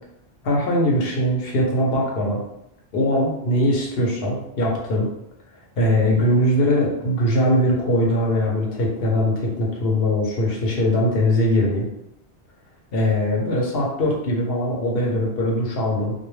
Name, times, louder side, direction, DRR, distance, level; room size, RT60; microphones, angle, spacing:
voice 1, 0.4-2.4 2.9-5.1 5.8-11.8 12.9-16.1, left 1 dB, 60° left, -2 dB, 0.9 m, -21 dB
2.2 x 2.2 x 3.1 m, 0.80 s
omnidirectional pair, 1.1 m